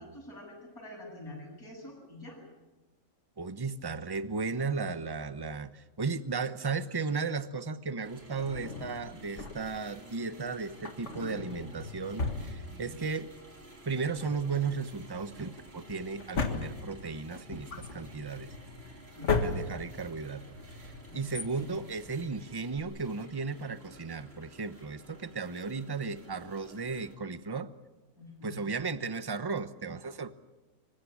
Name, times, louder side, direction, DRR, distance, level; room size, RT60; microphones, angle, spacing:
voice 1, 0.0-2.4 12.6-13.0 19.1-19.3 21.1-21.3 28.2-28.6, left 1 dB, 75° left, -2 dB, 8.6 m, -46 dB
voice 2, 3.4-13.3 13.8-18.5 19.4-20.6 21.1-27.7 28.4-30.4, right 4 dB, 20° right, 13 dB, 0.7 m, -35 dB
sound 1, 8.0-27.1, right 1 dB, 40° right, 3.2 m, -53 dB
Drawer open or close, 8.4-9.9 10.7-13.2 13.5-13.6 14.1-22.8, left 4 dB, 50° left, 2.0 m, -37 dB
26.0 x 15.5 x 9.9 m, 1.1 s
omnidirectional pair, 1.6 m